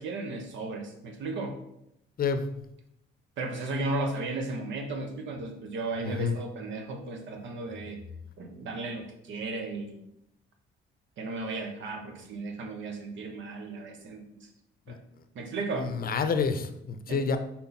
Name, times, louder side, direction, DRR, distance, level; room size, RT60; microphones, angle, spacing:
voice 1, 0.0-1.6 3.4-8.0 8.4-10.0 11.2-14.5 14.9-15.0 15.3-15.9 17.1-17.3, right 2 dB, 70° right, 4 dB, 1.1 m, -35 dB
voice 2, 6.0-6.4 14.9-15.0 15.8-17.4, left 5 dB, 50° left, 10 dB, 0.6 m, -28 dB
5.6 x 4.2 x 4.1 m, 0.81 s
cardioid pair, 90°, 20 cm